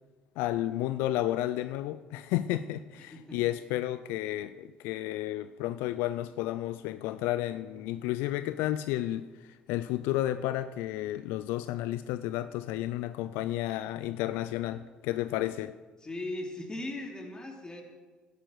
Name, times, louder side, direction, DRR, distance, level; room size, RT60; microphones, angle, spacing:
voice 1, 0.4-15.7, left 14 dB, 70° left, 0.4 m, -32 dB
voice 2, 3.0-3.4 16.0-17.8, left 2 dB, 20° left, 3.0 m, -38 dB
13.0 x 10.0 x 4.7 m
hypercardioid pair, 60°, 4 cm